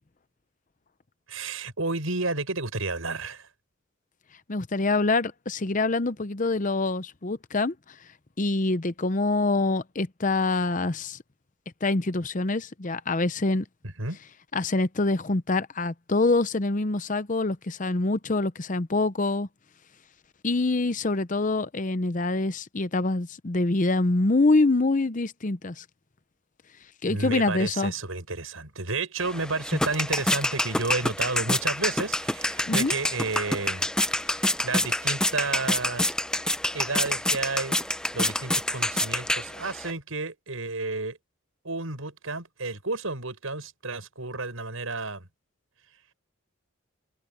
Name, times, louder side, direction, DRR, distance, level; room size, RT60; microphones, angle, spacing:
voice 1, 1.3-3.5 13.8-14.2 27.1-33.9 34.2-36.1 36.7-37.8 38.1-41.2 41.6-45.3, right 3 dB, 85° right, 6.4 m, -31 dB
voice 2, 4.5-8.0 8.4-11.2 11.8-13.7 14.5-19.5 20.4-25.8 27.0-27.9 32.7-32.9, left 2 dB, 40° left, 0.7 m, -25 dB
sound 1, 29.2-39.9, left 1 dB, 5° left, 0.6 m, -27 dB
head